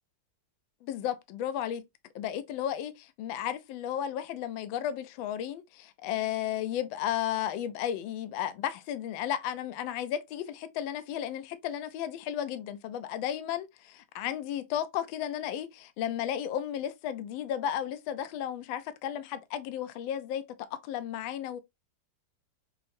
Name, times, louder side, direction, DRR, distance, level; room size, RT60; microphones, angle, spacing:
voice 1, 0.8-1.8 2.1-13.7 14.1-21.6, left 10 dB, 75° left, 1.2 m, -34 dB
5.6 x 2.0 x 2.6 m
omnidirectional pair, 2.4 m